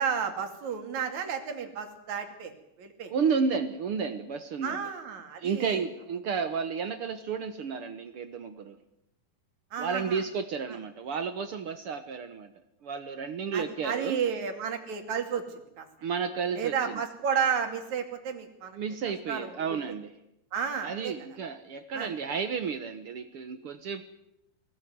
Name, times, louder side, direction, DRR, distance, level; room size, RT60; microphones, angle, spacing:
voice 1, 0.0-2.5 2.8-3.1 4.6-5.8 9.7-10.2 13.5-15.9 16.6-18.8 19.3-19.5 20.5-21.1 21.9-22.1, right 7 dB, 55° right, 5 dB, 3.7 m, -32 dB
voice 2, 3.1-4.8 5.4-8.8 9.8-12.5 12.8-14.2 16.0-17.0 18.7-20.1 20.8-24.0, right 6 dB, 70° right, 9 dB, 1.3 m, -32 dB
22.0 x 17.5 x 9.5 m, 0.82 s
omnidirectional pair, 4.2 m